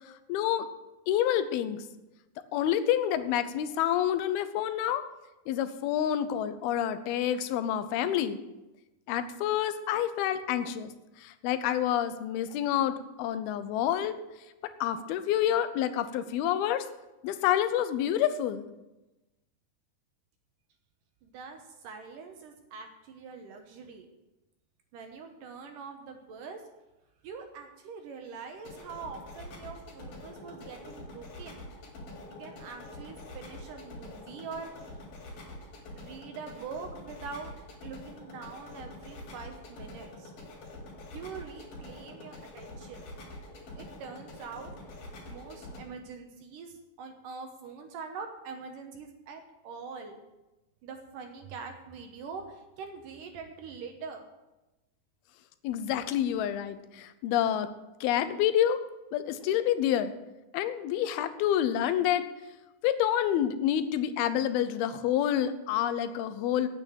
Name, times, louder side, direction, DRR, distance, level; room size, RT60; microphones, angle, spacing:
voice 1, 0.3-0.7 1.1-1.8 2.5-5.0 5.5-8.4 9.1-10.9 11.2-14.2 14.8-16.8 17.2-18.7 55.6-57.7 58.0-58.8 59.1-60.1 60.5-62.3 62.8-66.7, left 10 dB, 85° left, 12 dB, 2.7 m, -28 dB
voice 2, 21.2-24.1 24.9-26.6 27.2-31.6 32.3-35.0 36.0-37.5 37.8-40.3 41.1-43.1 43.7-44.7 45.3-50.2 50.8-54.3, right 5 dB, 70° right, 4 dB, 2.4 m, -44 dB
sound 1, 28.5-45.8, left 1 dB, 70° left, 4.7 m, -46 dB
9.0 x 8.5 x 8.8 m, 1.0 s
omnidirectional pair, 4.3 m